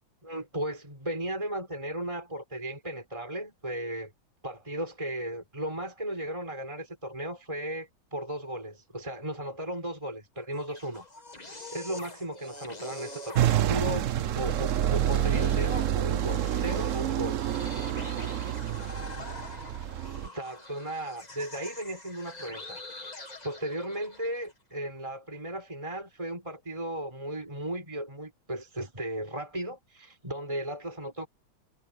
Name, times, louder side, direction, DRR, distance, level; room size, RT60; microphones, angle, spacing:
voice 1, 0.2-4.1 4.4-11.1 11.3-17.8 20.3-31.3, right 1 dB, 15° right, 4.5 m, -36 dB
sound 1, 10.4-24.5, left 2 dB, 20° left, 2.0 m, -45 dB
sound 2, 13.4-20.3, right 11 dB, 80° right, 0.7 m, -28 dB
omnidirectional pair, 2.2 m